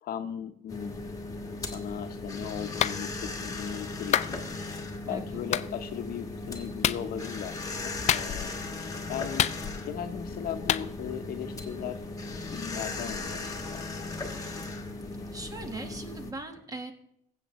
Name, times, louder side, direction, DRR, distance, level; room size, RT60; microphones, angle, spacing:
voice 1, 0.0-1.0 1.6-4.4 5.1-8.5 9.1-9.5 9.9-12.0 12.4-13.9, left 9 dB, 65° left, 8 dB, 0.9 m, -37 dB
sound 1, 0.7-16.3, left 3 dB, 20° left, 1.4 m, -37 dB
Clapping, 2.8-3.0 4.1-4.3 5.5-5.7 6.8-7.0 8.1-8.5 9.4-9.9 10.7-10.9, left 10 dB, 45° left, 0.4 m, -26 dB
voice 2, 5.0-5.4 15.3-16.9, right 2 dB, 20° right, 6 dB, 1.4 m, -40 dB
16.0 x 7.7 x 3.1 m, 0.75 s
cardioid pair, 110°, 17 cm